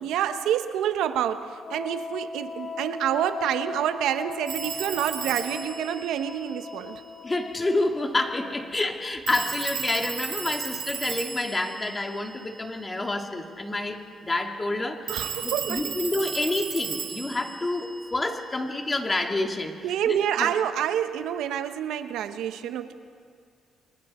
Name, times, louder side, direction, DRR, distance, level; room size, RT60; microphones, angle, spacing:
voice 1, 0.0-7.0 15.1-15.9 19.8-22.9, right 10 dB, 85° right, 10 dB, 1.0 m, -28 dB
Wind instrument woodwind instrument, 1.6-9.0, left 4 dB, 55° left, 2.3 m, -39 dB
Telephone, 4.5-7.1 9.3-12.9 15.1-18.6, right 7 dB, 65° right, 3.6 m, -35 dB
voice 2, 7.2-19.8 20.1-20.5, left 2 dB, 20° left, 3 dB, 2.4 m, -28 dB
30.0 x 23.5 x 4.4 m, 2.1 s
cardioid pair, 90°, 0 cm